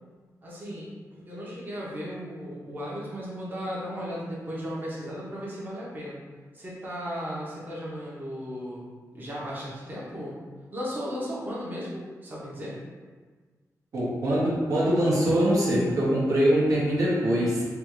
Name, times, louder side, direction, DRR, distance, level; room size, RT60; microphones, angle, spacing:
voice 1, 0.4-6.2 6.5-8.9 9.1-10.3 10.7-12.8, equal, 30° right, -7 dB, 0.8 m, -35 dB
voice 2, 13.9-17.6, equal, 60° right, -6 dB, 0.8 m, -23 dB
3.4 x 2.4 x 3.0 m, 1.4 s
wide cardioid pair, 125°, 6 cm